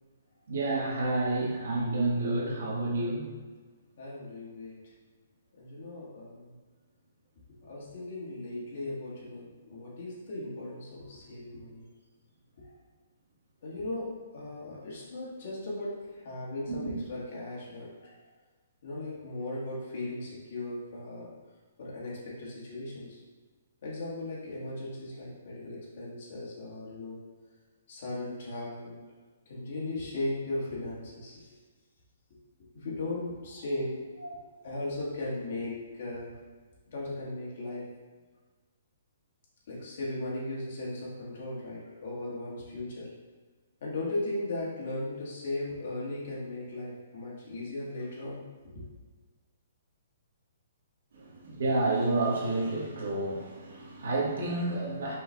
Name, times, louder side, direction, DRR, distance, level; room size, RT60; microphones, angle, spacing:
voice 1, 0.5-3.2 16.8-16.9 51.2-55.2, right 2 dB, 70° right, -3 dB, 1.3 m, -29 dB
voice 2, 4.0-4.7 5.6-6.5 7.6-11.8 12.6-12.7 13.6-14.1 14.3-18.1 18.8-21.3 21.8-23.2 23.8-27.2 27.9-29.0 29.5-31.5 32.7-36.3 36.9-37.8 39.7-43.1 43.8-48.7, left 2 dB, 45° left, -6 dB, 1.5 m, -37 dB
5.6 x 4.0 x 2.2 m, 1.4 s
hypercardioid pair, 175°, 0 cm